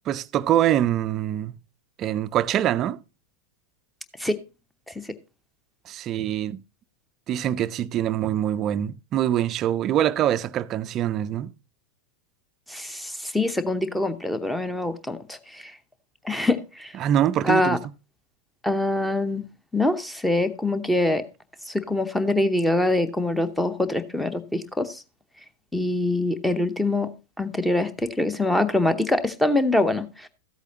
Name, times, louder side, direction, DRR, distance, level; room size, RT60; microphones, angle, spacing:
voice 1, 0.1-1.5 2.0-3.0 5.9-6.6 7.3-11.5 17.0-17.8, right 11 dB, 30° right, 0.4 m, -24 dB
voice 2, 12.7-15.6 16.2-16.9 17.4-17.8 18.6-19.5 19.7-21.2 21.7-25.0 25.7-27.1 27.4-30.3, left 2 dB, 5° left, 0.8 m, -24 dB
13.5 x 8.2 x 2.8 m
figure-of-eight pair, 90°, 0 cm